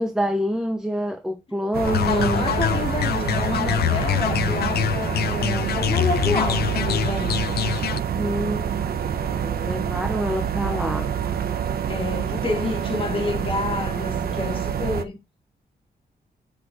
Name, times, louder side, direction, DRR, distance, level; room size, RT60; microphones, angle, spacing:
voice 1, 0.0-2.4 8.1-8.6 9.2-11.1, equal, 5° right, 0.9 m, -26 dB
sound 1, 1.7-15.0, right 8 dB, 70° right, 1.1 m, -27 dB
sound 2, 1.8-8.0, left 11 dB, 75° left, 0.4 m, -25 dB
voice 2, 2.0-7.6 11.9-15.1, left 3 dB, 35° left, 2.8 m, -29 dB
9.9 x 4.8 x 5.0 m
wide cardioid pair, 125°, 17 cm